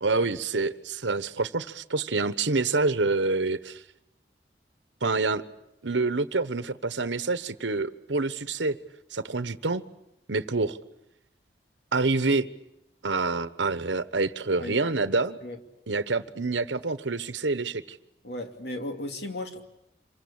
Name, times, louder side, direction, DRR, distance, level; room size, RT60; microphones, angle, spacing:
voice 1, 0.0-3.8 5.0-5.4 5.8-8.8 9.1-9.8 10.3-10.8 11.9-12.5 13.0-15.4 15.9-18.0, right 3 dB, 90° right, 13 dB, 1.1 m, -27 dB
voice 2, 14.6-15.6 18.2-19.6, left 1 dB, 70° left, 4 dB, 2.7 m, -36 dB
27.0 x 23.5 x 8.7 m, 0.83 s
head